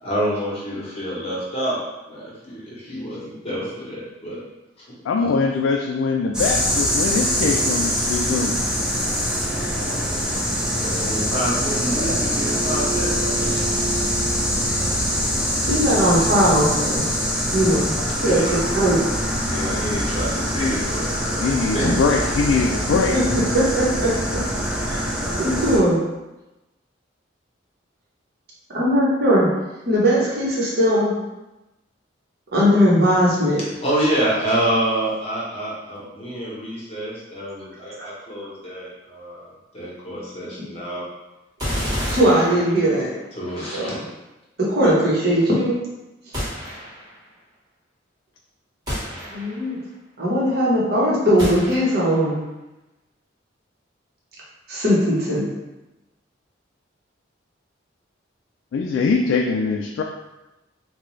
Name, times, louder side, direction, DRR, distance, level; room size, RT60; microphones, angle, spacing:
voice 1, 0.0-1.8 2.1-4.4 5.2-5.3 8.0-8.1 8.3-8.4 10.6-14.2 18.2-18.7 19.5-22.3 33.8-41.1 42.0-42.2 43.3-44.0, equal, 30° left, -6 dB, 0.9 m, -27 dB
voice 2, 5.0-8.6 21.4-23.5 58.7-60.0, left 4 dB, 80° left, 1 dB, 0.3 m, -22 dB
sound 1, 6.3-25.8, equal, 5° right, 0.5 m, -23 dB
voice 3, 15.6-17.0 17.5-17.9 18.2-18.4 18.7-19.0 23.1-23.2 23.5-24.1 24.8-25.1 25.4-26.0 28.7-29.5 29.9-31.1 32.5-33.6 42.1-43.1 43.7-44.0 44.6-45.7 49.3-49.8 50.2-52.4 54.7-55.5, equal, 55° right, -6 dB, 0.9 m, -19 dB
sound 2, 41.6-43.2 46.3-47.2 48.9-49.8 51.4-52.3, equal, 20° right, 1.1 m, -30 dB
3.8 x 2.3 x 3.1 m, 1.0 s
head